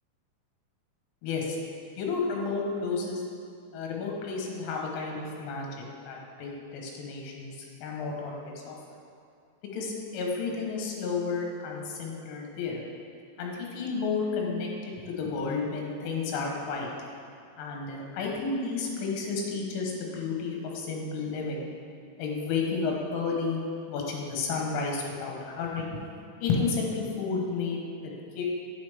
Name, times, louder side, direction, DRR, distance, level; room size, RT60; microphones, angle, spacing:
voice 1, 1.2-1.6 2.0-3.2 3.7-7.6 7.8-8.8 9.7-12.8 13.4-16.9 17.6-21.7 22.2-23.6 23.9-26.1 26.4-28.4, left 4 dB, 80° left, -1 dB, 3.7 m, -32 dB
8.9 x 8.3 x 3.6 m, 2.4 s
omnidirectional pair, 5.7 m